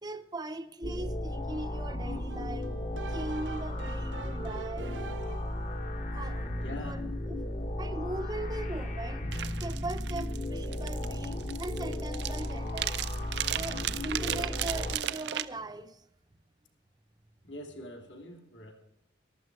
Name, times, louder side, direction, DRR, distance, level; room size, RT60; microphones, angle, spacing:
voice 1, 0.0-2.8 3.1-5.0 6.1-7.0 7.3-7.4 7.8-9.3 9.6-13.0 13.5-16.0, right 2 dB, 20° right, 0.6 m, -40 dB
sound 1, 0.8-15.0, left 1 dB, 40° left, 1.0 m, -35 dB
sound 2, 2.3-5.6, right 5 dB, 85° right, 0.8 m, -45 dB
voice 2, 6.6-7.1 17.4-18.7, left 1 dB, 80° left, 2.8 m, -44 dB
sound 3, 9.3-15.5, right 12 dB, 65° right, 0.4 m, -35 dB
14.5 x 12.0 x 4.7 m
head